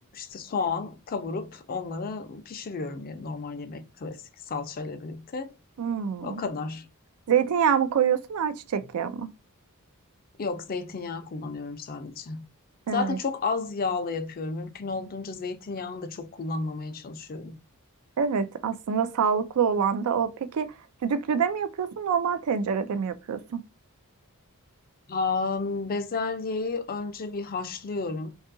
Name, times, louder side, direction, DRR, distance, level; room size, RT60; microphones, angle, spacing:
voice 1, 0.1-5.5 6.2-6.9 10.4-12.4 12.9-17.6 25.1-28.3, left 4 dB, 40° left, 0.4 m, -32 dB
voice 2, 5.8-6.4 7.3-9.3 12.9-13.2 18.2-20.7 21.0-23.6, right 7 dB, 75° right, 0.4 m, -26 dB
2.7 x 2.4 x 2.5 m
head